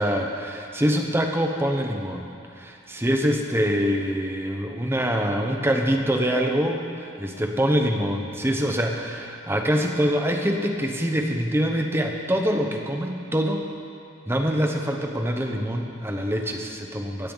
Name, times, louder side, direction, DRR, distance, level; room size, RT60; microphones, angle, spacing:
voice 1, 0.0-2.3 2.5-13.6 14.3-17.3, equal, 10° right, 3 dB, 0.9 m, -24 dB
16.5 x 15.5 x 4.0 m, 2.5 s
head